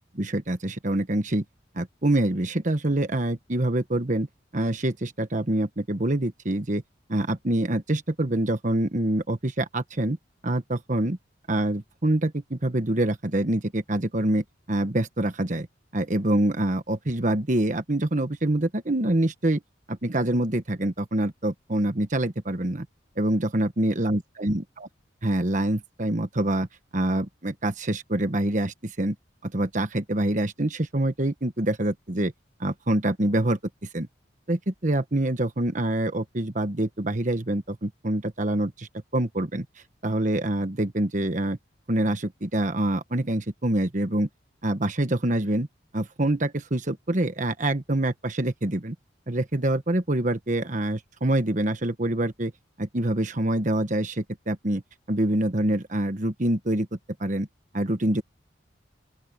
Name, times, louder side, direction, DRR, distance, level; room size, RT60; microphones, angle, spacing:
voice 1, 0.2-1.4 1.7-4.3 4.5-6.8 7.1-10.2 10.4-11.2 11.5-15.7 15.9-19.6 19.9-22.9 23.2-24.6 25.2-26.7 26.9-29.1 29.4-32.3 32.6-33.6 33.9-34.1 34.5-39.6 40.0-41.6 41.9-44.3 44.6-45.7 45.9-48.9 49.3-52.5 52.8-54.8 55.1-57.5 57.7-58.2, right 1 dB, 40° right, 1.3 m, -25 dB
open air
head